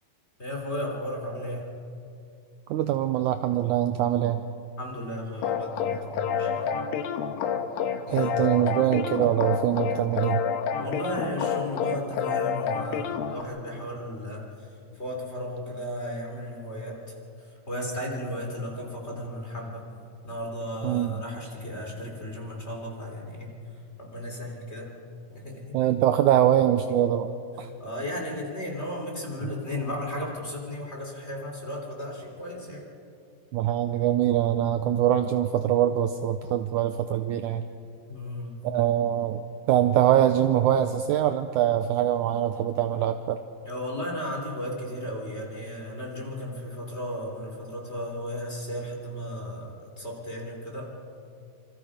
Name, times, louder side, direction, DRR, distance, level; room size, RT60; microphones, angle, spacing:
voice 1, 0.4-1.7 4.8-6.7 8.1-8.3 10.7-14.4 15.0-17.0 17.7-19.9 20.2-23.5 24.0-24.9 25.3-25.8 27.8-32.9 38.1-38.6 43.6-50.9, left 1 dB, 20° left, -1 dB, 3.5 m, -35 dB
voice 2, 2.7-4.4 8.1-10.4 20.8-21.2 25.7-27.3 27.6-27.7 33.5-37.6 38.6-39.4 39.7-43.4, right 11 dB, 75° right, 8 dB, 1.9 m, -23 dB
sound 1, 5.4-13.4, left 7 dB, 80° left, 2.9 m, -29 dB
27.0 x 26.0 x 5.1 m, 2.5 s
omnidirectional pair, 4.1 m